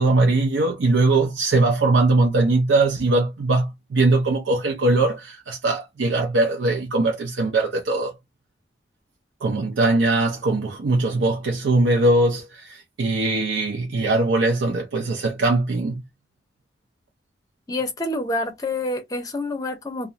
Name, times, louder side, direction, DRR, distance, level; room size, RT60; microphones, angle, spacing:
voice 1, 0.0-8.2 9.4-16.0, right 2 dB, 85° right, 0.5 m, -21 dB
voice 2, 17.7-20.1, left 2 dB, 20° left, 0.6 m, -27 dB
2.3 x 2.1 x 2.7 m
head